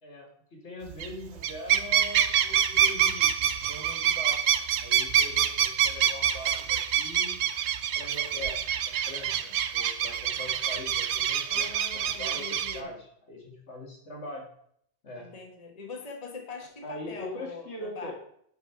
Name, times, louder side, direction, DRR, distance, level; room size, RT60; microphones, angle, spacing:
voice 1, 0.0-7.4 7.9-14.5 15.0-15.3 16.8-18.1, left 1 dB, 80° left, 0 dB, 2.3 m, -42 dB
sound 1, 0.9-1.1 1.4-12.8, right 9 dB, 80° right, 0.9 m, -26 dB
voice 2, 11.5-12.9 15.2-18.1, left 4 dB, 35° left, 2 dB, 1.3 m, -42 dB
7.2 x 5.4 x 5.7 m, 0.67 s
omnidirectional pair, 1.2 m